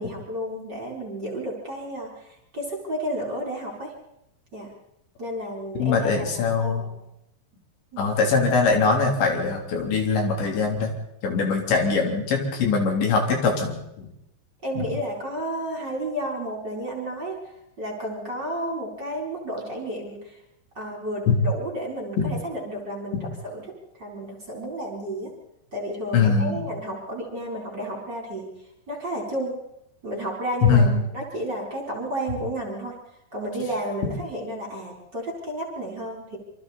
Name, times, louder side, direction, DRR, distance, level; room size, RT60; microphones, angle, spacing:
voice 1, 0.0-3.9 4.5-4.7 5.2-6.9 7.9-8.1 14.6-17.4 17.8-20.4 20.8-25.3 25.7-28.5 28.9-29.6 30.0-33.0 33.3-36.4, right 1 dB, 25° right, -1 dB, 4.0 m, -32 dB
voice 2, 5.8-6.8 8.0-10.9 11.2-14.1 14.8-14.9 21.3-21.4 22.2-22.3 23.1-23.2 26.1-26.6 30.6-31.0, left 4 dB, 70° left, 2 dB, 5.5 m, -22 dB
27.0 x 25.0 x 4.2 m, 0.84 s
omnidirectional pair, 5.4 m